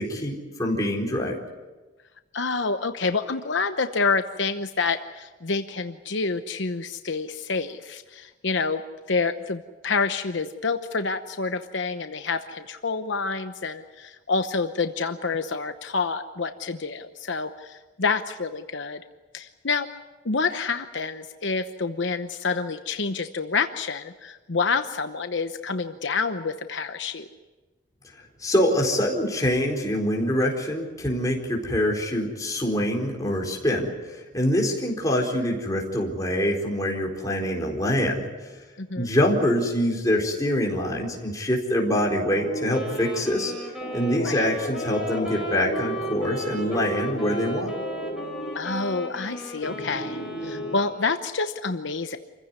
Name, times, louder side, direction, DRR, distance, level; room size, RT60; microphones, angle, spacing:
voice 1, 0.0-1.4 28.4-38.6 39.0-43.5 43.9-47.7, equal, 20° left, -1 dB, 4.3 m, -25 dB
voice 2, 2.3-8.8 9.1-19.0 19.3-19.9 20.2-27.3 38.8-39.2 44.2-44.5 48.5-52.2, left 4 dB, 70° left, 8 dB, 0.9 m, -28 dB
sound 1, 42.3-50.8, equal, 40° left, 2.9 m, -34 dB
Wind instrument woodwind instrument, 42.7-51.2, right 1 dB, 5° right, 4.6 m, -37 dB
27.5 x 16.0 x 9.6 m, 1.2 s
head